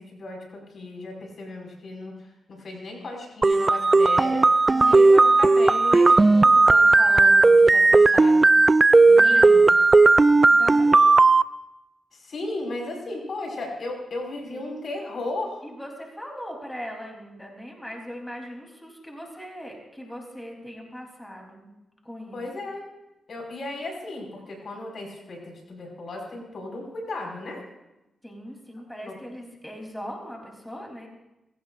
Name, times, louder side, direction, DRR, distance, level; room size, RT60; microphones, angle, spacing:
voice 1, 0.0-8.4 8.7-9.7 12.1-15.6 22.3-22.9 23.3-27.6 29.0-29.1, left 2 dB, 60° left, 0 dB, 5.3 m, -35 dB
sound 1, 3.4-11.4, right 3 dB, 30° right, 0.4 m, -16 dB
voice 2, 4.7-5.1 9.1-9.4 10.5-11.1 14.5-14.6 15.6-21.7 22.0-22.4 28.2-31.1, equal, 5° left, 0 dB, 3.4 m, -40 dB
23.0 x 16.0 x 2.5 m, 0.95 s
cardioid pair, 70°, 0 cm